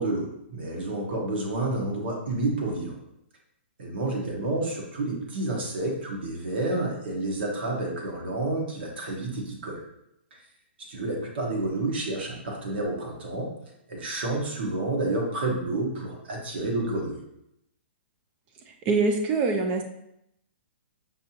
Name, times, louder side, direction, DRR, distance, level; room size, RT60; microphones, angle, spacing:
voice 1, 0.0-3.0 3.8-9.8 10.9-13.5 13.9-17.2, right 2 dB, 60° right, -1 dB, 1.2 m, -29 dB
voice 2, 18.9-19.8, right 3 dB, 20° right, 4 dB, 0.4 m, -23 dB
5.4 x 2.7 x 2.9 m, 0.79 s
hypercardioid pair, 165°, 6 cm